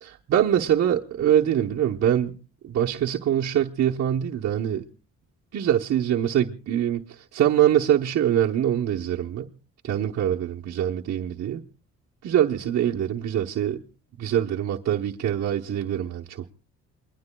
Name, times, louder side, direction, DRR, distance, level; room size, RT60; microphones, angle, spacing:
voice 1, 0.0-2.3 2.6-4.8 5.5-7.0 7.3-9.5 9.8-11.6 12.2-13.8 14.2-16.5, right 10 dB, 60° right, 0.9 m, -24 dB
27.5 x 21.5 x 2.3 m
cardioid pair, 90°, 30 cm